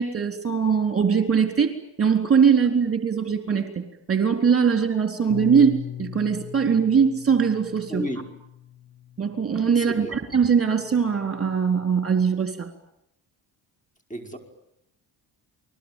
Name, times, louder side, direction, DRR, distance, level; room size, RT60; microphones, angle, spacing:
voice 1, 0.0-1.7 2.0-8.0 9.2-12.7, right 6 dB, 30° right, 6 dB, 4.0 m, -21 dB
Bass guitar, 5.3-11.5, left 11 dB, 80° left, 2.7 m, -40 dB
voice 2, 7.9-8.2 9.8-10.1 14.1-14.4, equal, 15° left, 5 dB, 5.4 m, -32 dB
29.0 x 22.0 x 9.3 m, 0.82 s
cardioid pair, 80°, 45 cm